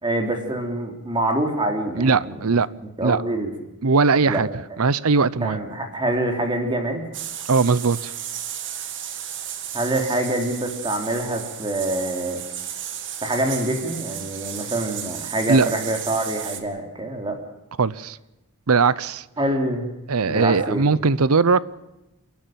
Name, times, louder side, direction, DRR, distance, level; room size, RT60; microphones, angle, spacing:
voice 1, 0.0-2.6 3.0-3.5 4.3-4.4 5.4-7.1 9.7-12.4 13.2-17.4 19.4-20.0 20.3-20.9, right 1 dB, 20° right, 4 dB, 3.4 m, -25 dB
voice 2, 2.0-2.7 3.0-3.2 3.8-4.5 4.8-5.6 7.5-8.1 15.5-15.7 17.8-18.2 18.7-19.2 20.1-21.6, right 4 dB, 75° right, 19 dB, 0.7 m, -19 dB
sound 1, 7.1-16.6, right 9 dB, 55° right, 2.1 m, -34 dB
29.0 x 12.0 x 9.1 m, 0.96 s
head